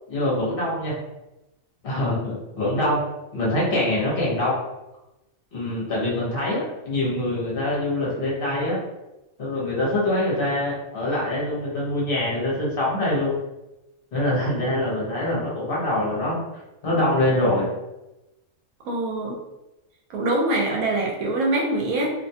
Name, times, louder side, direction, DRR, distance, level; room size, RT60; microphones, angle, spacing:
voice 1, 0.1-0.9 1.8-3.0 3.3-4.5 5.5-8.8 9.4-13.3 14.1-16.4 16.8-17.7, left 1 dB, 50° left, -5 dB, 0.9 m, -24 dB
voice 2, 18.8-19.4 20.1-22.1, right 2 dB, 85° right, -1 dB, 1.1 m, -24 dB
2.6 x 2.2 x 2.7 m, 0.97 s
omnidirectional pair, 1.4 m